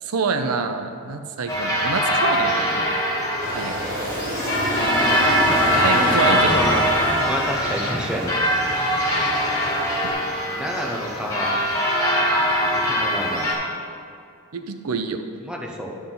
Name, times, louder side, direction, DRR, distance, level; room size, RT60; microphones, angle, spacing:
voice 1, 0.0-2.9 3.5-3.9 5.8-6.5 14.5-15.2, right 4 dB, 85° right, 8 dB, 0.6 m, -26 dB
sound 1, 1.5-13.5, equal, 15° left, 1.5 m, -22 dB
Aircraft, 3.4-10.1, equal, 40° right, 1.7 m, -29 dB
voice 2, 5.9-8.4 9.1-9.3 9.8-9.9 10.5-11.5 12.6-13.5 15.4-15.9, equal, 5° right, -1 dB, 0.9 m, -29 dB
10.5 x 6.2 x 3.9 m, 2.4 s
head